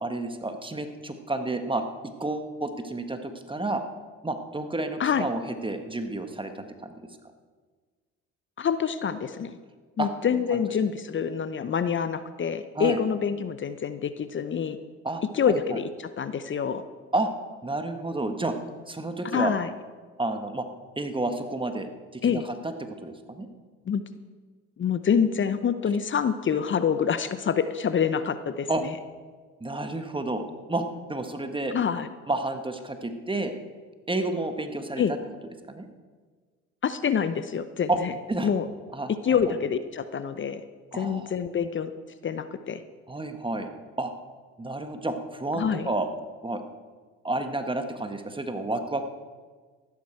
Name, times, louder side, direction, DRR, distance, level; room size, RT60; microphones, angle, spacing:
voice 1, 0.0-1.8 2.2-3.8 4.2-6.9 10.0-10.1 10.5-10.6 12.7-13.0 15.0-15.6 17.1-17.3 17.6-18.6 18.9-19.5 20.2-20.6 21.0-23.5 28.7-28.8 29.6-30.4 30.7-30.8 31.1-31.8 32.3-33.5 34.1-35.2 35.7-35.9 37.9-38.0 38.3-38.5 38.9-39.4 40.9-41.3 43.1-43.7 44.0-44.1 44.6-46.1 46.4-46.6 47.2-49.0, right 2 dB, 15° right, 6 dB, 1.5 m, -30 dB
voice 2, 8.6-9.6 10.0-14.8 15.3-16.8 19.2-19.7 22.2-22.5 23.9-24.0 24.8-28.9 31.7-32.1 35.0-35.1 36.8-38.1 38.4-38.7 39.1-40.6 40.9-41.9 42.2-42.8 45.5-45.9, left 7 dB, 35° left, 12 dB, 0.8 m, -26 dB
14.5 x 12.5 x 4.6 m, 1.5 s
hypercardioid pair, 60°, 35 cm